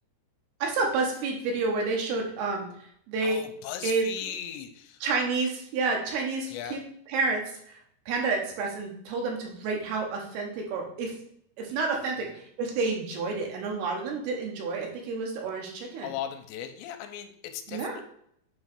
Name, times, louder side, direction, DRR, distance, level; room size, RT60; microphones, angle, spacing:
voice 1, 0.6-2.7 3.1-3.4 3.8-4.1 5.0-6.8 7.1-7.8 8.1-11.1 11.6-16.1 17.7-18.0, right 4 dB, 75° right, 1 dB, 2.7 m, -29 dB
voice 2, 3.2-5.0 6.5-6.8 16.0-18.0, left 10 dB, 85° left, 7 dB, 2.8 m, -37 dB
8.1 x 3.1 x 5.2 m, 0.68 s
omnidirectional pair, 5.0 m